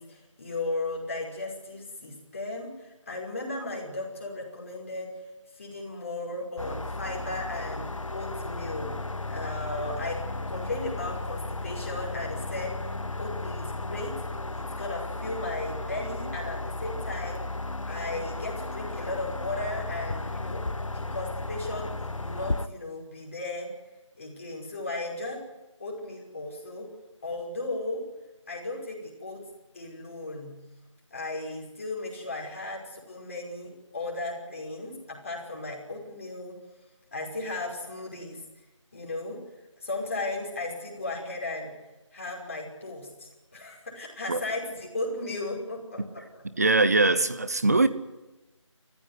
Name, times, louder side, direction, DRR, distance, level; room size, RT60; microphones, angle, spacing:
voice 1, 0.0-5.1 5.6-9.0 9.3-12.8 13.2-14.2 14.6-17.5 17.9-20.6 20.9-23.7 24.2-25.4 25.8-26.9 27.2-28.1 28.5-29.5 29.7-30.6 31.1-36.6 37.1-38.4 38.9-39.4 39.8-41.7 42.1-46.2, left 2 dB, 25° left, -2 dB, 5.4 m, -36 dB
sound 1, 6.6-22.7, left 2 dB, 80° left, 1.2 m, -34 dB
voice 2, 46.6-47.9, right 2 dB, 30° right, 13 dB, 1.1 m, -21 dB
30.0 x 15.0 x 9.7 m, 1.1 s
figure-of-eight pair, 170°, 16 cm